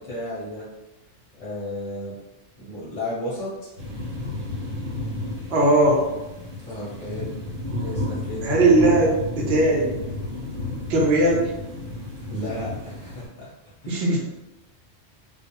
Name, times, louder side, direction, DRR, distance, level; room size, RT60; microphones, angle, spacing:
voice 1, 0.1-0.7 1.4-2.2 2.6-3.7 6.6-7.3 7.8-8.5 12.3-13.5 13.8-14.0, left 1 dB, 45° left, -8 dB, 0.6 m, -33 dB
sound 1, 3.8-13.3, left 2 dB, 85° right, 1.1 m, -32 dB
voice 2, 5.5-6.0 8.4-10.0 10.9-11.5 13.9-14.2, right 2 dB, 60° right, -2 dB, 0.8 m, -19 dB
2.3 x 2.1 x 2.8 m, 0.99 s
omnidirectional pair, 1.3 m